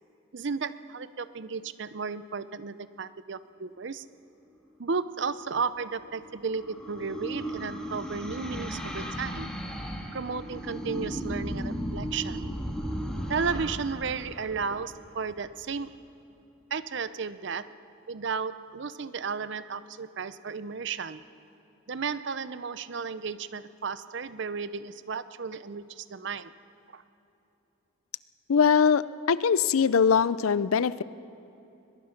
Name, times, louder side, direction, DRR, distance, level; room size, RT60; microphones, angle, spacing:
voice 1, 0.3-4.0 4.8-9.5 10.1-12.5 13.3-16.0 16.7-17.8 18.1-21.2 21.9-26.6 26.9-27.0, right 5 dB, 60° right, 14 dB, 0.6 m, -34 dB
sound 1, 5.8-15.4, equal, 5° left, 1.7 m, -36 dB
voice 2, 28.5-31.0, left 6 dB, 85° left, 17 dB, 0.5 m, -22 dB
22.0 x 21.0 x 5.9 m, 2.9 s
head